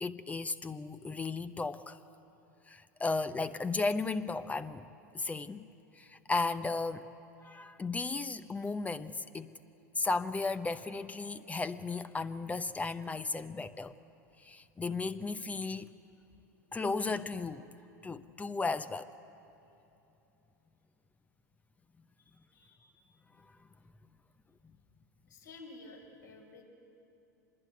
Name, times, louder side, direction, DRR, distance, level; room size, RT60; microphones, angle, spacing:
voice 1, 0.0-2.0 2.7-4.8 5.1-5.6 6.0-7.1 7.4-9.5 10.0-13.9 14.4-15.9 16.7-17.7 18.0-19.1, left 3 dB, 15° left, 12 dB, 0.8 m, -35 dB
voice 2, 22.2-22.9 23.3-23.4 25.3-26.6, left 2 dB, 75° left, -1 dB, 5.5 m, -53 dB
25.5 x 21.0 x 9.3 m, 3.0 s
hypercardioid pair, 90°, 10 cm